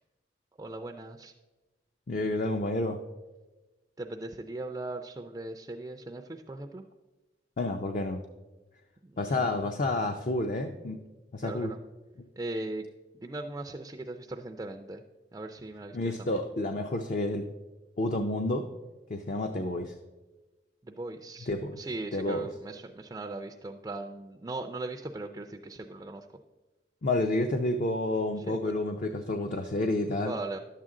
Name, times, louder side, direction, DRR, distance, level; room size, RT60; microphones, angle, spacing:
voice 1, 0.6-1.3 4.0-6.8 9.0-9.6 11.4-11.8 12.4-12.9 13.1-15.0 15.3-16.4 20.8-26.3 28.5-28.8 30.2-30.6, right 2 dB, 20° right, 4 dB, 0.4 m, -39 dB
voice 2, 2.1-3.0 7.6-8.2 9.2-11.0 11.3-11.7 15.9-17.5 18.0-18.7 19.1-19.9 21.5-21.8 22.1-22.5 27.0-30.3, left 2 dB, 45° left, 6 dB, 0.5 m, -29 dB
11.0 x 7.4 x 3.7 m, 1.2 s
head